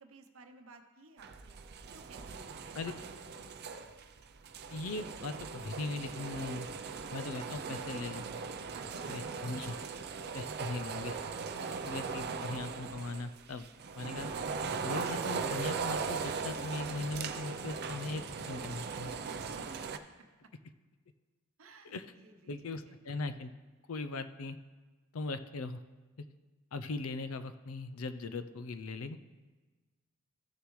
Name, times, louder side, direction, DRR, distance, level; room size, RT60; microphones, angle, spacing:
voice 1, 0.0-1.6 1.9-3.1 8.7-9.4 9.8-10.1 19.1-19.8 20.1-20.2 21.6-23.0, right 3 dB, 75° right, 6 dB, 0.8 m, -57 dB
sound 1, 1.2-20.0, right 5 dB, 50° right, 0.5 m, -39 dB
voice 2, 4.7-6.7 7.1-8.2 9.1-9.8 10.3-11.2 11.8-13.7 13.9-14.3 14.8-19.1 21.8-22.1 22.5-23.5 23.9-24.6 25.1-25.8 26.7-29.2, left 3 dB, 85° left, 11 dB, 0.5 m, -39 dB
14.0 x 6.8 x 3.2 m, 1.3 s
head